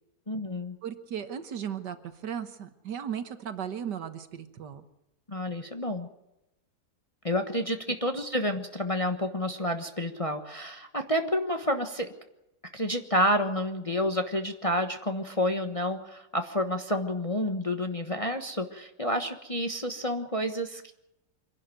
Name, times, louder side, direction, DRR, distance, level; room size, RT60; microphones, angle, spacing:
voice 1, 0.3-0.8 5.3-6.1 7.2-12.1 12.7-20.9, equal, 20° left, 5 dB, 1.1 m, -29 dB
voice 2, 0.8-4.8, right 8 dB, 70° right, 10 dB, 1.8 m, -36 dB
25.0 x 11.5 x 9.2 m, 0.90 s
omnidirectional pair, 2.0 m